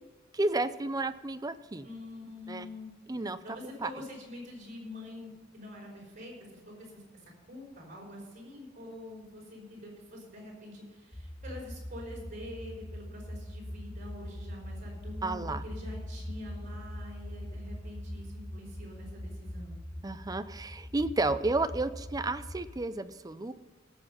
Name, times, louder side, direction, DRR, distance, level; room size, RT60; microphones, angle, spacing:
voice 1, 0.3-1.9 2.5-2.7 3.1-3.4 3.8-3.9 15.2-15.6 20.0-23.5, right 2 dB, 20° right, 12 dB, 0.5 m, -31 dB
voice 2, 1.8-2.9 3.2-7.0 7.4-19.8, left 1 dB, 40° right, -2 dB, 5.0 m, -46 dB
sound 1, 11.1-22.7, equal, 15° left, 0.9 m, -42 dB
17.0 x 7.1 x 5.5 m, 1.3 s
head